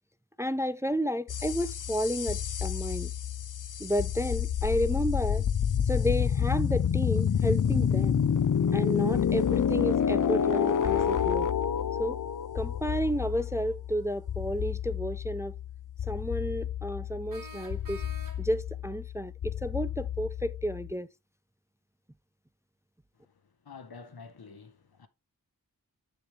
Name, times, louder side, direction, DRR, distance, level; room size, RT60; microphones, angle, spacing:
voice 1, 0.4-3.1 3.8-5.4 5.9-8.2 8.7-11.5 12.0-12.2 12.5-15.5 16.1-18.0 18.4-21.1, equal, 10° right, 0.4 m, -31 dB
sound 1, 1.3-20.9, left 8 dB, 60° left, 0.6 m, -29 dB
sound 2, 15.0-15.1 17.3-18.7, equal, 60° right, 1.6 m, -47 dB
voice 2, 23.6-25.1, left 5 dB, 80° left, 1.0 m, -48 dB
7.9 x 6.9 x 3.3 m
wide cardioid pair, 60°, 37 cm